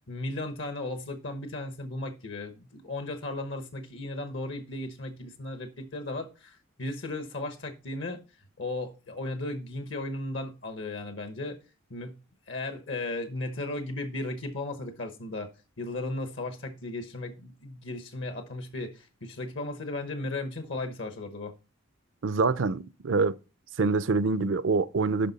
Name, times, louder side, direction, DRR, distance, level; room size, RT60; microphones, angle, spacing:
voice 1, 0.1-8.2 8.6-11.6 11.9-12.2 12.5-15.5 15.8-21.5, left 2 dB, 65° left, 1.0 m, -35 dB
voice 2, 22.2-23.4 23.8-25.3, right 4 dB, 70° right, 0.5 m, -25 dB
10.0 x 5.8 x 4.1 m
head